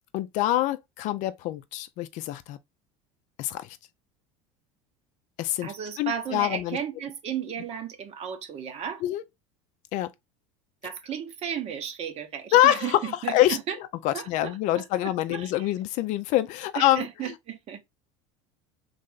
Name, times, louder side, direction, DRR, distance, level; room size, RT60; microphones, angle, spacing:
voice 1, 0.1-2.6 3.4-3.8 5.4-5.7 6.0-6.8 9.0-9.2 9.9-10.1 12.5-13.0 13.3-13.6 14.0-17.1, left 14 dB, 55° left, 0.4 m, -25 dB
voice 2, 5.6-9.0 10.8-13.8 14.1-15.7 16.7-17.8, right 8 dB, 45° right, 0.9 m, -34 dB
3.3 x 2.6 x 3.8 m
supercardioid pair, 105°, 15 cm